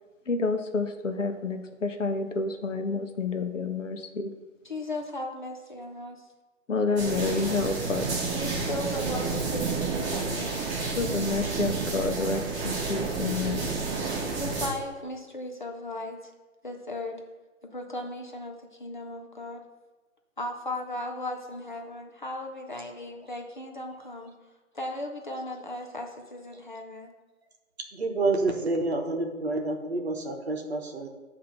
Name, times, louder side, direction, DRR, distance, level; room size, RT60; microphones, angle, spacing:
voice 1, 0.3-4.3 6.7-8.2 11.0-13.7, left 4 dB, 65° left, 6 dB, 0.8 m, -29 dB
voice 2, 4.7-6.2 8.3-10.6 14.3-16.3 16.6-17.2 17.6-19.6 20.4-24.3 24.7-27.1, left 1 dB, 40° left, 2 dB, 0.5 m, -36 dB
sound 1, 7.0-14.7, right 4 dB, 10° right, 2.0 m, -30 dB
voice 3, 27.9-31.1, right 2 dB, 50° right, 3 dB, 1.0 m, -28 dB
8.4 x 2.8 x 5.4 m, 1.2 s
figure-of-eight pair, 140°, 40 cm